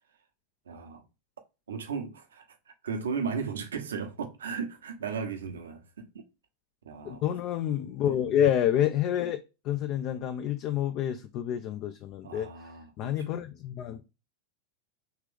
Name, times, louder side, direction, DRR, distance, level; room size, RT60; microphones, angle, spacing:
voice 1, 0.7-1.0 1.7-6.1 6.8-7.2 8.0-8.1 12.2-13.4, right 5 dB, 65° right, 0.9 m, -36 dB
voice 2, 7.0-14.1, left 10 dB, 40° left, 0.4 m, -29 dB
4.7 x 3.3 x 3.4 m
figure-of-eight pair, 90°, 0 cm